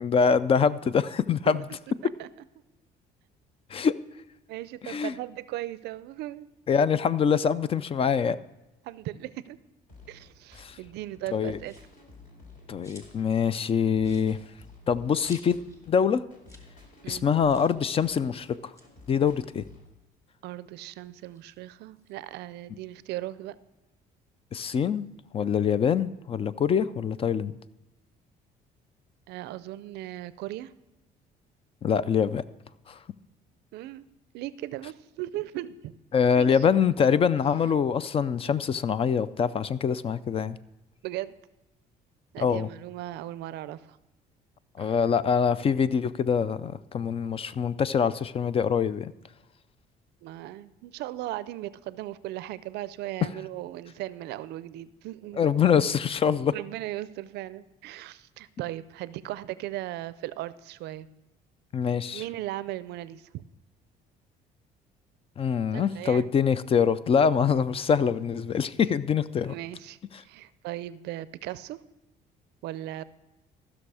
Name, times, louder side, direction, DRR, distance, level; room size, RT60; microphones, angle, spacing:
voice 1, 0.0-1.6 3.7-3.9 4.8-5.1 6.7-8.4 10.6-10.8 11.3-11.6 12.7-14.4 14.9-15.6 15.9-16.2 17.1-18.7 19.1-19.6 24.5-25.0 25.3-27.5 31.8-32.4 32.9-33.0 36.1-40.6 42.4-42.7 44.8-49.1 55.4-56.5 61.7-62.2 65.4-69.5, left 7 dB, 35° left, 16 dB, 0.4 m, -24 dB
voice 2, 4.5-6.5 8.8-9.6 10.1-11.8 17.0-17.3 20.4-23.6 29.3-30.7 33.7-34.0 34.3-35.9 36.4-36.6 37.4-37.5 41.0-41.3 42.3-44.0 44.8-44.9 50.2-55.5 56.5-61.1 62.1-63.4 65.7-66.3 69.5-70.0 70.2-71.8 72.6-73.0, right 15 dB, 80° right, 16 dB, 0.5 m, -37 dB
sound 1, 9.9-19.9, left 3 dB, 55° left, 3.2 m, -53 dB
sound 2, 11.6-12.0 12.4-13.3 13.6-13.7 14.0-15.8 16.1-16.2 16.4-16.7 17.0-17.1 17.5-17.8 18.5-20.3 20.7-22.2, left 1 dB, 20° left, 1.8 m, -54 dB
14.5 x 6.2 x 4.8 m, 0.97 s
cardioid pair, 110°, 17 cm